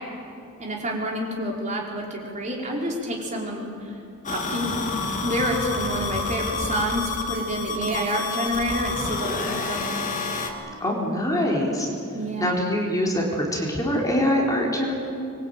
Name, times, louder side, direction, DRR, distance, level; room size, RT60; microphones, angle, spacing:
voice 1, 0.6-3.7 4.3-4.8 5.2-10.0 12.1-12.6, equal, 35° right, -2 dB, 4.6 m, -28 dB
sound 1, 4.2-10.5, left 3 dB, 35° left, 2.5 m, -29 dB
voice 2, 10.8-11.9 12.4-14.9, left 1 dB, 15° left, -2 dB, 3.9 m, -24 dB
25.0 x 22.5 x 9.1 m, 2.6 s
head